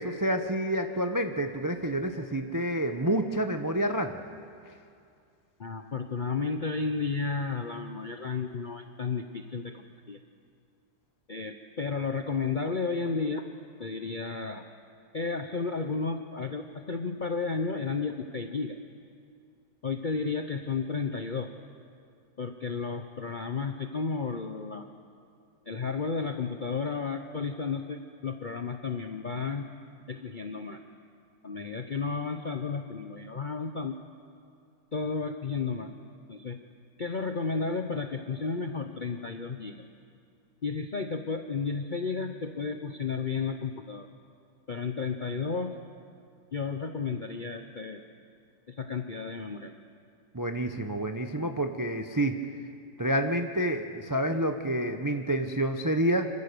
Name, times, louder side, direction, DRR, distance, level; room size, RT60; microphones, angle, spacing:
voice 1, 0.0-4.2 50.3-52.4 53.0-56.3, right 1 dB, 30° right, 6 dB, 0.3 m, -28 dB
voice 2, 5.6-10.2 11.3-13.5 13.8-14.6 15.1-18.8 19.8-21.5 22.4-24.8 25.7-29.6 30.1-30.8 31.4-33.9 34.9-35.9 36.3-36.6 37.0-39.8 40.6-44.1 44.7-45.8 46.5-48.0 48.7-49.7, left 4 dB, 55° left, 6 dB, 0.5 m, -32 dB
26.5 x 15.0 x 6.8 m, 2.4 s
omnidirectional pair, 1.9 m